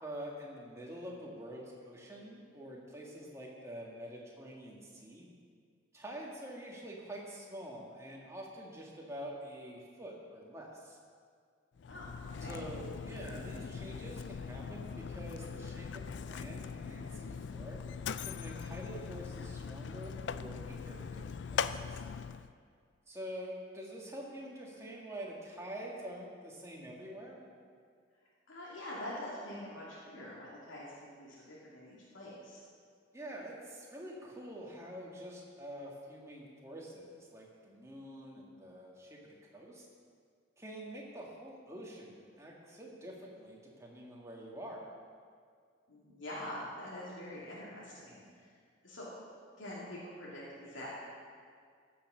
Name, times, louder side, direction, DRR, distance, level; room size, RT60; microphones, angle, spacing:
voice 1, 0.0-5.3 5.9-11.0 12.4-17.8 18.2-22.0 23.1-27.4 33.1-39.9 40.6-44.8 48.1-48.3, right 1 dB, 15° right, -3 dB, 1.9 m, -46 dB
voice 2, 11.8-12.7 28.5-32.6 45.9-48.6 48.8-49.1 49.6-50.9, left 1 dB, 90° left, -7 dB, 2.6 m, -45 dB
Mechanisms, 11.8-22.5, left 6 dB, 65° left, 0.4 m, -41 dB
14.5 x 6.8 x 6.2 m, 2.1 s
head